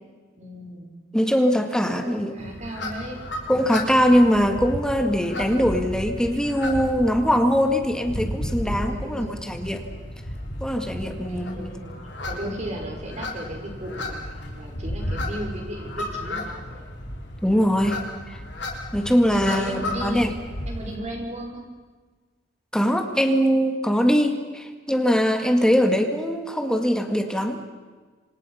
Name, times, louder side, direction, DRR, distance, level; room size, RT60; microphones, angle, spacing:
voice 1, 0.4-0.9 1.8-3.2 8.1-9.4 11.0-11.9 12.2-16.8 19.0-20.3 20.7-21.7, right 1 dB, 40° right, 1 dB, 5.7 m, -36 dB
voice 2, 1.1-2.4 3.5-9.8 10.6-11.7 12.4-12.5 17.4-18.0 18.3-18.4 18.9-20.3 22.7-27.6, equal, 5° left, 5 dB, 2.0 m, -22 dB
sound 1, 2.4-21.0, left 1 dB, 70° left, 3.7 m, -33 dB
28.0 x 26.0 x 5.7 m, 1.4 s
head